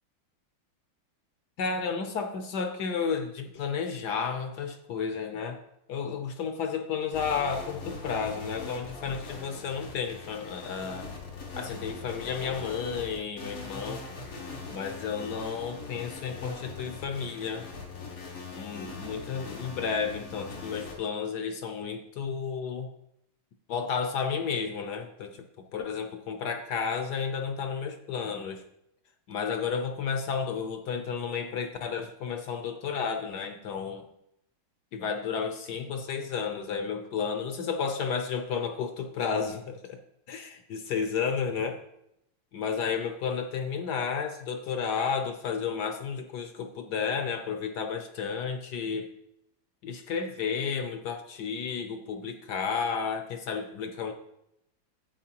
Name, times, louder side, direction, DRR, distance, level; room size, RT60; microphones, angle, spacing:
voice 1, 1.6-5.6 5.9-11.1 11.6-14.1 14.7-17.7 18.5-22.9 23.7-28.6 29.3-34.0 34.9-40.0 40.3-41.8 42.5-49.1 49.8-54.1, left 6 dB, 65° left, 6 dB, 1.1 m, -32 dB
sound 1, 7.1-20.9, left 4 dB, 85° left, 3.0 m, -41 dB
12.0 x 8.1 x 2.9 m, 0.80 s
omnidirectional pair, 2.4 m